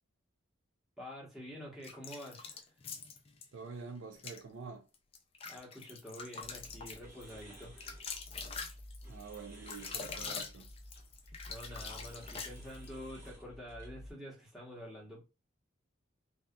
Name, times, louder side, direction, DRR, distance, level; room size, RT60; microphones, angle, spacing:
voice 1, 1.0-2.7 5.4-7.8 11.5-15.2, equal, ahead, 1.0 m, -48 dB
sound 1, 1.8-3.5 4.1-4.4 4.9-12.9, left 5 dB, 30° left, 0.3 m, -44 dB
voice 2, 3.5-4.9 9.1-10.7, right 5 dB, 65° right, 0.4 m, -47 dB
sound 2, 6.4-14.1, equal, 40° right, 1.1 m, -51 dB
2.7 x 2.3 x 2.2 m
head